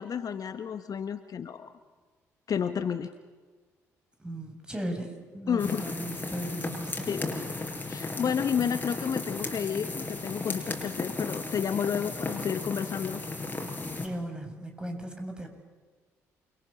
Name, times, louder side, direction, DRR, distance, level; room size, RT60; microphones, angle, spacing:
voice 1, 0.0-1.7 2.5-3.1 5.5-5.8 7.1-7.3 7.9-13.2, left 7 dB, 50° left, 10 dB, 1.3 m, -31 dB
voice 2, 4.2-7.5 13.9-15.5, right 1 dB, 10° right, 4 dB, 7.5 m, -37 dB
sound 1, 5.6-14.1, left 2 dB, 20° left, 6.8 m, -35 dB
29.0 x 23.5 x 7.2 m, 1.4 s
hypercardioid pair, 45°, 8 cm